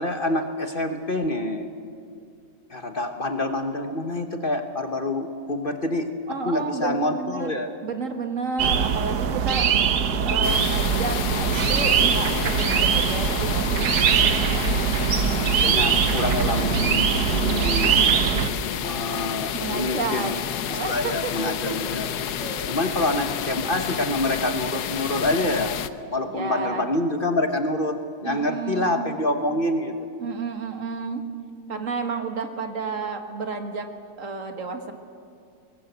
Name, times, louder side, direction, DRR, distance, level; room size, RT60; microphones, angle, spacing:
voice 1, 0.0-1.7 2.7-6.1 6.4-7.7 15.6-18.0 18.8-20.4 20.7-22.1 22.7-25.8 26.1-29.9, left 1 dB, 40° left, 6 dB, 1.3 m, -26 dB
voice 2, 6.3-9.7 10.2-14.8 19.5-21.7 22.4-22.6 26.2-26.9 28.2-29.0 30.2-31.3 31.7-33.9 34.2-34.9, right 4 dB, 55° right, 5 dB, 1.9 m, -31 dB
sound 1, 8.6-18.5, right 7 dB, 80° right, 1.6 m, -22 dB
sound 2, 10.4-25.9, left 9 dB, 85° left, 1.4 m, -30 dB
23.0 x 19.5 x 8.1 m, 2.4 s
omnidirectional pair, 1.7 m